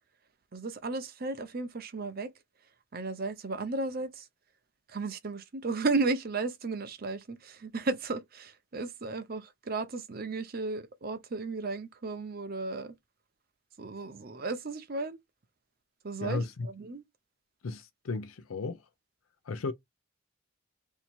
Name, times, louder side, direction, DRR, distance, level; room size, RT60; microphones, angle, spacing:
voice 1, 0.5-2.3 2.9-4.3 4.9-12.9 13.8-15.2 16.0-17.0, right 3 dB, 45° right, 0.6 m, -34 dB
voice 2, 17.6-18.8 19.5-19.7, left 3 dB, 85° left, 0.5 m, -34 dB
2.8 x 2.7 x 4.3 m
head